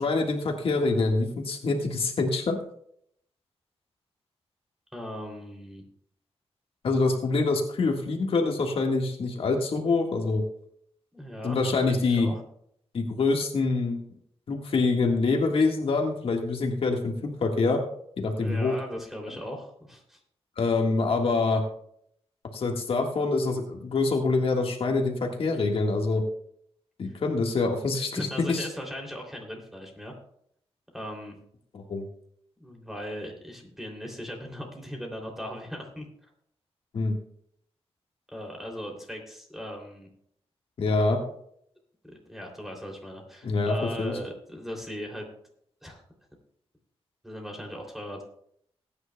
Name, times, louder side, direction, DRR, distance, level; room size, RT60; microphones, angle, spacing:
voice 1, 0.0-2.6 6.8-10.4 11.4-12.3 12.9-14.0 14.5-17.8 18.2-18.7 20.6-21.6 22.5-26.2 27.0-28.7 31.7-32.1 36.9-37.2 40.8-41.2 43.4-44.2, left 3 dB, 65° left, 2 dB, 1.7 m, -25 dB
voice 2, 4.9-5.8 11.1-12.3 18.4-20.2 27.0-27.2 28.1-30.2 30.9-31.4 32.6-36.0 38.3-40.1 42.0-45.3 45.8-46.0 47.2-48.2, equal, 5° right, 0 dB, 3.0 m, -38 dB
20.5 x 9.7 x 2.3 m, 0.68 s
wide cardioid pair, 105°, 11 cm